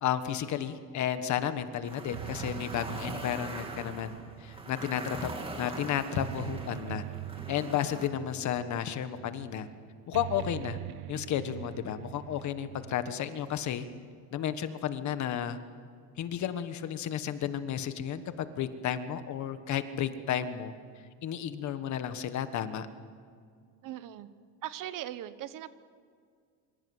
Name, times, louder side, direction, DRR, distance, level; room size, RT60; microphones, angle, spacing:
voice 1, 0.0-4.1 4.4-7.0 7.5-9.7 10.1-10.8 11.1-13.8 14.3-15.6 16.2-20.7 21.2-22.9, left 9 dB, 50° left, 10 dB, 1.5 m, -32 dB
sound 1, 1.3-13.1, right 17 dB, 85° right, 0.8 m, -44 dB
sound 2, 1.8-8.1, right 2 dB, 15° right, 2.4 m, -42 dB
voice 2, 23.8-24.3 24.6-25.8, right 12 dB, 55° right, 13 dB, 1.2 m, -39 dB
26.5 x 25.0 x 7.9 m, 2.1 s
cardioid pair, 170°, 38 cm